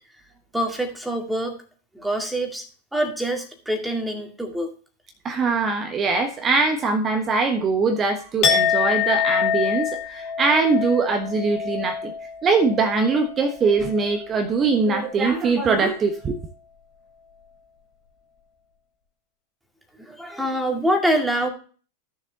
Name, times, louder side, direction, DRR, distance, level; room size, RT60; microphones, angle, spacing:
voice 1, 0.5-1.6 1.9-2.7 2.9-4.7 20.0-21.5, right 1 dB, 5° right, 2.2 m, -25 dB
voice 2, 5.2-12.1 12.4-16.4, right 4 dB, 25° right, 1.3 m, -22 dB
Chink clink, 8.4-14.4 14.7-15.1, left 7 dB, 35° left, 1.8 m, -26 dB
15.0 x 7.1 x 2.9 m
figure-of-eight pair, 90°, 0 cm